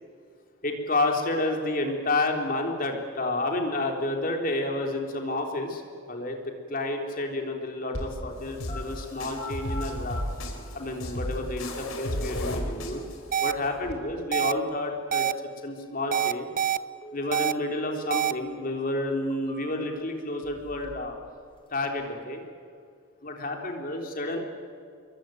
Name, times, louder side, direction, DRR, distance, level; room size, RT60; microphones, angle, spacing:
voice 1, 0.6-5.8 6.1-6.4 6.7-10.2 10.7-13.0 13.4-15.3 15.6-16.5 17.1-21.2 21.7-22.4 23.2-24.4, left 2 dB, 40° left, 3 dB, 3.5 m, -30 dB
sound 1, 7.9-13.9, left 1 dB, 85° left, 3.9 m, -34 dB
sound 2, 8.7-8.8 9.3-10.2 11.2-11.3 12.0-13.0 17.0-18.0 18.4-18.5 19.1-20.0 20.4-21.1 21.4-22.0, right 1 dB, 25° left, 4.6 m, -42 dB
sound 3, 13.3-13.5 14.3-14.5 15.1-15.3 16.1-16.8 17.3-17.5 18.1-18.3, right 10 dB, 40° right, 0.7 m, -25 dB
26.0 x 23.0 x 9.2 m, 2.3 s
head